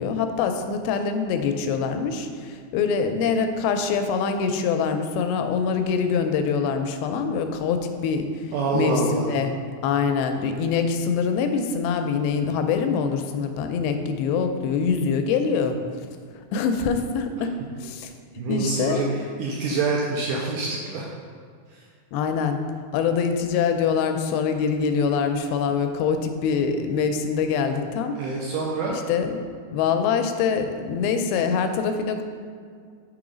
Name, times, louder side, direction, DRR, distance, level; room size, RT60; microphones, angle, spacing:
voice 1, 0.0-8.5 8.7-9.5 9.8-15.8 16.5-17.5 17.8-18.1 18.5-19.0 22.1-22.6 22.9-28.2 29.1-29.4 29.7-32.2, left 6 dB, 90° left, 7 dB, 2.4 m, -24 dB
voice 2, 8.5-9.3 18.4-21.1 21.7-21.8 28.2-29.0, right 3 dB, 85° right, -3 dB, 1.8 m, -26 dB
6.1 x 3.9 x 5.0 m, 2.1 s
omnidirectional pair, 4.2 m